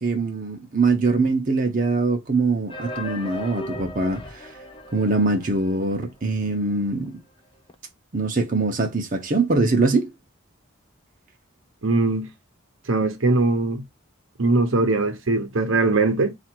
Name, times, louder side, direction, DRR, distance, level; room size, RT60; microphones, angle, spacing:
voice 1, 0.0-4.5 4.9-7.2 8.1-10.1, right 3 dB, 40° right, 0.7 m, -23 dB
sound 1, 2.7-6.4 6.7-6.8 7.0-7.1 7.7-7.8, left 1 dB, 25° left, 0.4 m, -37 dB
voice 2, 11.8-12.3 12.9-13.8 14.4-16.3, right 3 dB, 70° right, 0.8 m, -21 dB
4.1 x 2.5 x 4.4 m
head